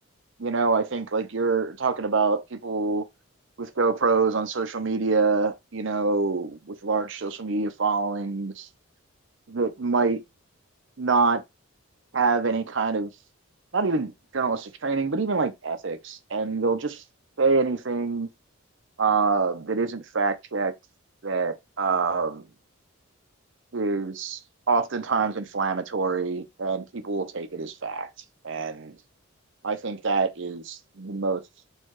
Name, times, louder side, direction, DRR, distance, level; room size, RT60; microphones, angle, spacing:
voice 1, 0.4-3.1 3.6-8.7 9.5-10.2 11.0-11.4 12.1-13.1 13.7-17.0 17.4-18.3 19.0-20.7 21.2-22.4 23.7-24.4 24.7-28.1 28.4-29.0 29.6-31.4, right 4 dB, 55° right, 0.7 m, -25 dB
4.5 x 2.4 x 4.7 m
head